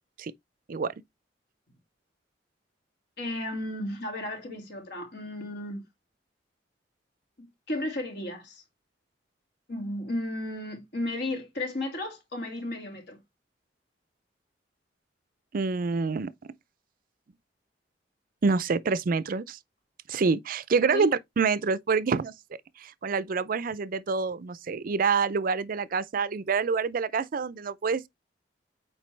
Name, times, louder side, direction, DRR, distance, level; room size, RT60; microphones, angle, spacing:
voice 1, 3.2-5.8 7.4-8.6 9.7-13.2 20.9-21.1, left 1 dB, 65° left, 2.5 m, -34 dB
voice 2, 15.5-16.3 18.4-19.6 20.1-28.1, right 4 dB, 50° right, 0.5 m, -27 dB
7.4 x 4.6 x 3.3 m
head